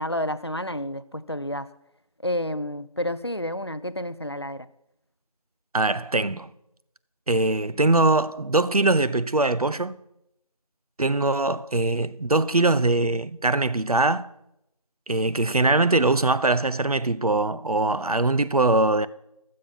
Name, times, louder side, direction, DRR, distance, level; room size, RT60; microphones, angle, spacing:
voice 1, 0.0-1.7 2.2-4.7, left 1 dB, 45° left, 0.5 m, -30 dB
voice 2, 5.7-6.5 7.3-10.0 11.0-14.3 15.1-19.1, right 2 dB, 75° right, 0.7 m, -22 dB
14.5 x 7.4 x 5.8 m
figure-of-eight pair, 180°, 19 cm